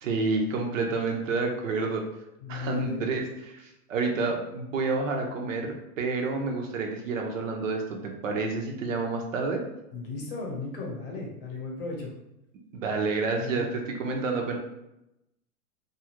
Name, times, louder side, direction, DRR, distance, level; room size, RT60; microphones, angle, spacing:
voice 1, 0.0-2.0 2.5-9.6 12.7-14.6, right 3 dB, 55° right, 2 dB, 0.6 m, -29 dB
voice 2, 2.4-3.0 9.9-12.1 13.4-13.6, left 3 dB, 35° left, -2 dB, 0.8 m, -35 dB
2.7 x 2.4 x 2.9 m, 0.87 s
hypercardioid pair, 155°, 47 cm